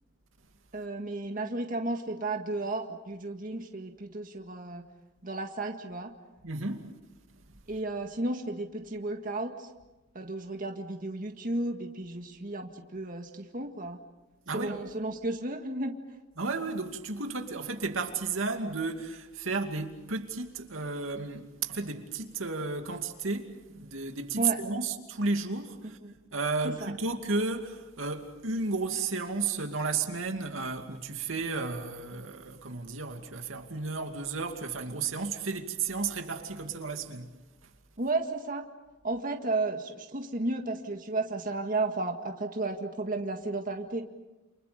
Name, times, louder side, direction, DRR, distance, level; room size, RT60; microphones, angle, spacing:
voice 1, 0.7-4.8 5.2-6.1 7.7-9.7 10.1-14.0 14.5-16.0 24.4-24.6 26.0-26.1 26.6-26.9 38.0-38.7 39.0-44.0, right 2 dB, 45° right, 1.9 m, -33 dB
voice 2, 6.4-6.9 14.5-14.8 16.4-26.0 26.3-37.3, right 4 dB, 85° right, 2.5 m, -33 dB
29.5 x 29.0 x 5.2 m
head